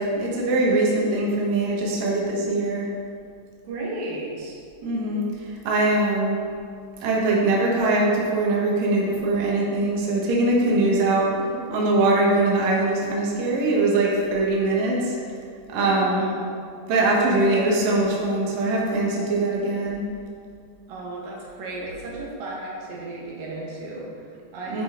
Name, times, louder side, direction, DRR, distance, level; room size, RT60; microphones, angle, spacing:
voice 1, 0.0-2.9 4.8-6.4 7.0-11.3 11.7-15.2 15.7-16.3 16.9-20.1 24.7-24.8, right 2 dB, 65° right, -3 dB, 2.3 m, -22 dB
voice 2, 3.6-4.6 10.8-11.6 15.8-16.5 20.9-24.8, right 2 dB, 85° right, -4 dB, 2.9 m, -35 dB
10.5 x 5.0 x 3.8 m, 2.3 s
omnidirectional pair, 3.9 m